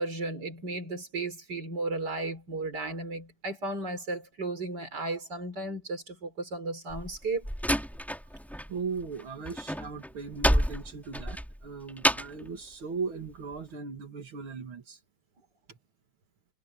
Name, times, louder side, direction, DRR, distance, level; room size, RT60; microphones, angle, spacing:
voice 1, 0.0-7.5, right 2 dB, 50° right, 5.2 m, -34 dB
Slam, 6.9-8.7 9.0-12.5, equal, ahead, 2.9 m, -29 dB
voice 2, 8.7-15.0 15.7-15.8, right 5 dB, 75° right, 2.9 m, -38 dB
omnidirectional pair, 2.3 m